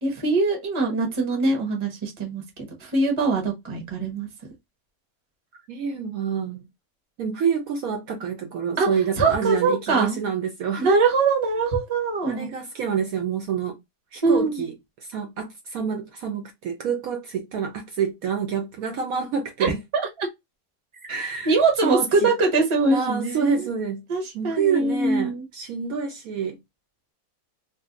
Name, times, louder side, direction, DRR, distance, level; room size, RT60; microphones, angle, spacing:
voice 1, 0.0-4.3 8.8-8.9 9.2-10.2 10.8-12.5 14.2-14.7 19.6-20.3 21.4-23.7 24.1-25.4, right 3 dB, 25° right, 0.8 m, -23 dB
voice 2, 5.7-6.6 7.2-10.9 12.3-13.8 14.1-14.7 15.1-19.8 21.1-21.5 21.8-22.3 22.9-24.0 24.3-26.6, right 6 dB, 70° right, 0.9 m, -27 dB
2.6 x 2.5 x 3.7 m
omnidirectional pair, 1.8 m